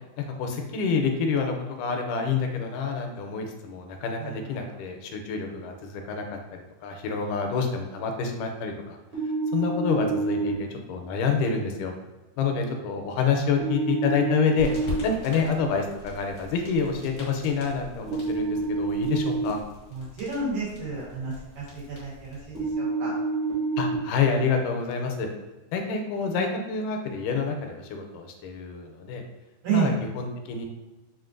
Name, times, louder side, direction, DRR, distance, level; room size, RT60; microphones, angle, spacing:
voice 1, 0.2-6.2 6.8-9.0 9.5-11.9 12.4-14.7 15.0-19.6 23.8-25.3 25.7-29.2 29.7-30.7, left 5 dB, 85° left, 4 dB, 2.1 m, -27 dB
voice 2, 4.2-4.7 19.9-23.1 29.6-29.9, right 6 dB, 80° right, -6 dB, 2.9 m, -31 dB
sound 1, 9.1-10.5 13.6-15.0 18.1-19.5 22.6-23.9, right 3 dB, 60° right, 1.7 m, -27 dB
sound 2, 14.6-22.7, left 3 dB, 65° left, 0.9 m, -42 dB
5.7 x 2.5 x 2.5 m, 1.1 s
omnidirectional pair, 3.5 m